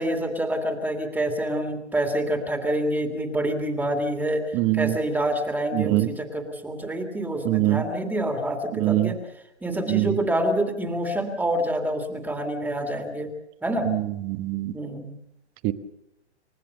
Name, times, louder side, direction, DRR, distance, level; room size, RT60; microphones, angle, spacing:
voice 1, 0.0-9.2 9.6-13.3 13.6-13.9 14.7-15.2, right 1 dB, 5° right, 4 dB, 2.2 m, -27 dB
voice 2, 4.5-4.9 5.7-6.1 7.4-7.8 8.7-9.1 9.9-10.2 13.8-14.7 15.6-15.7, right 17 dB, 25° right, 10 dB, 1.2 m, -23 dB
29.0 x 15.5 x 6.7 m, 0.87 s
hypercardioid pair, 140°, 35 cm